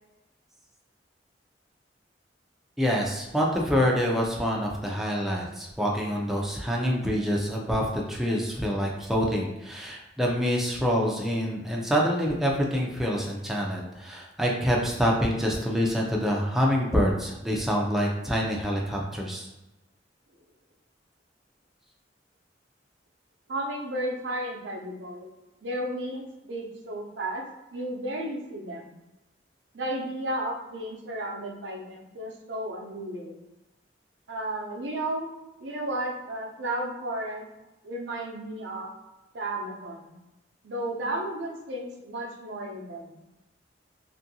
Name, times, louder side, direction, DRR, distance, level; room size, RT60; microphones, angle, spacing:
voice 1, 2.8-19.5, equal, ahead, -3 dB, 0.4 m, -26 dB
voice 2, 23.5-25.3 25.6-27.4 27.7-28.9 29.7-33.4 34.3-35.3 35.6-37.5 37.8-38.9 39.3-40.1 40.6-43.2, right 1 dB, 80° right, 0 dB, 0.6 m, -33 dB
2.7 x 2.5 x 2.6 m, 1.0 s
head